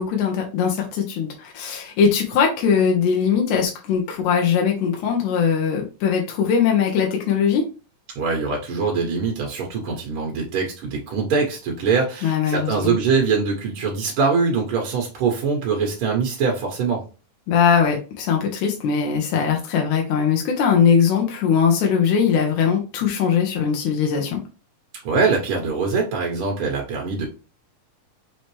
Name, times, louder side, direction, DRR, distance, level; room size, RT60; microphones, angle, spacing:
voice 1, 0.0-7.6 12.2-13.0 17.5-24.4, left 7 dB, 70° left, 1 dB, 2.2 m, -20 dB
voice 2, 8.2-17.0 25.0-27.3, right 5 dB, 70° right, -1 dB, 1.3 m, -23 dB
5.6 x 2.9 x 3.1 m, 0.33 s
omnidirectional pair, 3.8 m